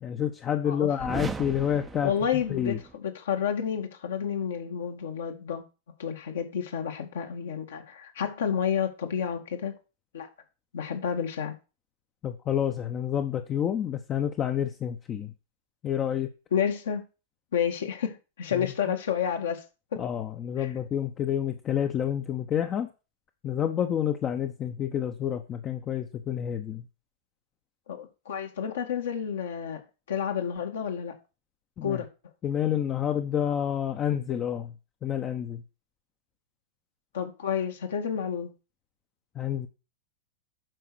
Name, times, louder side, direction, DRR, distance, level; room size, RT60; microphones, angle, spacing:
voice 1, 0.0-2.1 2.5-2.8 12.2-15.3 15.8-16.3 18.5-18.7 20.0-22.9 23.4-26.8 31.8-32.0 32.4-34.7 35.0-35.6 39.4-39.7, left 9 dB, 30° left, 0.9 m, -29 dB
voice 2, 0.6-1.0 2.0-5.6 6.0-9.8 10.1-10.3 10.7-11.6 16.5-17.1 17.5-19.7 19.9-20.0 20.6-20.7 27.9-29.8 30.1-31.1 31.8-32.1 37.1-38.5, left 8 dB, 65° left, 2.0 m, -30 dB
sound 1, 1.0-3.0, right 4 dB, 15° right, 0.7 m, -38 dB
9.1 x 6.0 x 6.3 m
figure-of-eight pair, 95°, 0 cm